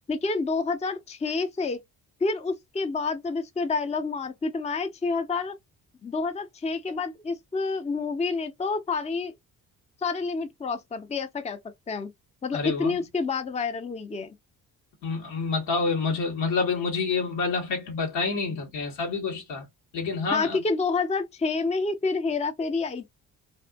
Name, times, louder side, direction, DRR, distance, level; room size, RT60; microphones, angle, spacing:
voice 1, 0.1-1.8 2.2-5.6 6.0-9.3 10.0-11.6 11.9-12.1 12.4-14.3 20.3-23.1, left 4 dB, 15° left, 0.5 m, -28 dB
voice 2, 12.5-13.0 15.0-19.7 19.9-20.6, left 4 dB, 80° left, 1.3 m, -28 dB
2.6 x 2.5 x 2.2 m
hypercardioid pair, 50°, 43 cm